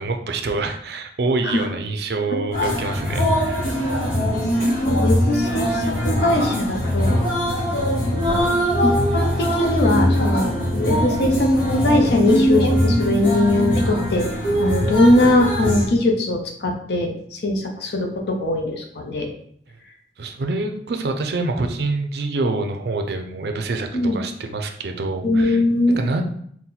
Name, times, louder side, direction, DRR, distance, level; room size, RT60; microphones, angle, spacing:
voice 1, 0.0-4.1 20.2-25.6 26.0-26.2, right 3 dB, 60° right, 5 dB, 0.4 m, -26 dB
sound 1, 2.5-15.9, equal, 45° left, 1.4 m, -21 dB
voice 2, 4.9-7.2 8.0-8.5 8.8-14.3 14.6-19.3 23.9-24.2 25.2-26.0, left 1 dB, 65° left, 2 dB, 0.7 m, -21 dB
4.2 x 2.2 x 3.9 m, 0.65 s
head